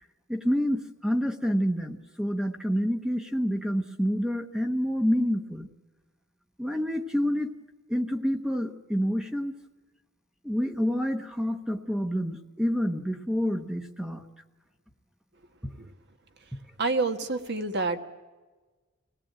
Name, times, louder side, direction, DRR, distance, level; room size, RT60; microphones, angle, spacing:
voice 1, 0.3-5.7 6.6-7.5 7.9-9.5 10.4-14.2 15.6-15.7, equal, 5° right, 5 dB, 0.9 m, -28 dB
voice 2, 16.8-18.0, right 3 dB, 55° right, 7 dB, 1.5 m, -27 dB
24.5 x 18.0 x 8.9 m, 1.3 s
head